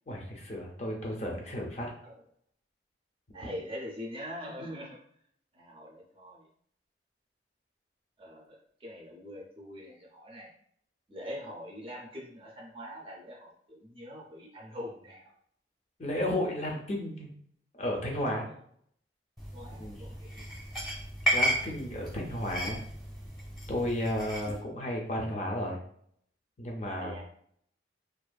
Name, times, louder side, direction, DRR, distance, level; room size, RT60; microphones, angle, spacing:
voice 1, 0.1-1.9 16.0-17.3 17.8-18.5 19.8-20.1 21.3-22.8 23.7-25.8 26.6-27.2, left 1 dB, 40° left, 0 dB, 0.5 m, -33 dB
voice 2, 3.3-5.0 5.5-6.5 8.2-10.5 11.1-15.3 19.5-20.5 27.0-27.3, equal, 30° right, -1 dB, 0.5 m, -43 dB
sound 1, 19.4-24.6, right 1 dB, ahead, 0.8 m, -34 dB
2.5 x 2.4 x 2.2 m, 0.65 s
head